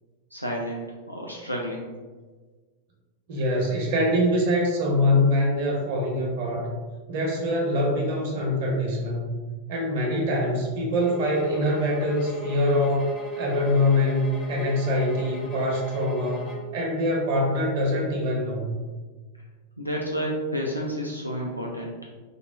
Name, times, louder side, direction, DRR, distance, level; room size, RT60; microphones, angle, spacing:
voice 1, 0.3-1.9 19.8-21.9, equal, 90° left, -2 dB, 0.3 m, -30 dB
voice 2, 3.3-6.7 7.1-9.3 9.7-18.7, left 1 dB, 50° right, -2 dB, 0.6 m, -24 dB
sound 1, 11.0-16.8, left 2 dB, 30° left, 0.5 m, -36 dB
3.5 x 2.0 x 2.3 m, 1.3 s
figure-of-eight pair, 90°, 0 cm